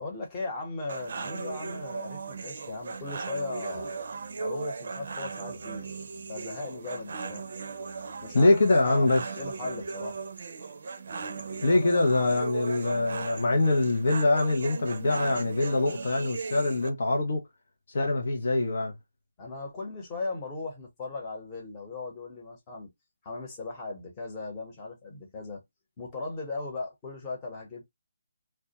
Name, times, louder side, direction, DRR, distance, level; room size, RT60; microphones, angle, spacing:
voice 1, 0.0-4.0 4.4-6.0 6.3-7.4 8.2-9.1 9.4-10.2 19.4-22.9 23.2-25.6 26.0-27.8, left 3 dB, 20° left, 1.0 m, -37 dB
sound 1, 0.9-16.9, right 4 dB, 55° right, 0.5 m, -37 dB
voice 2, 8.3-9.2 11.6-17.4 17.9-18.9, left 2 dB, 65° left, 0.6 m, -24 dB
2.2 x 2.1 x 2.8 m
figure-of-eight pair, 155°, 0 cm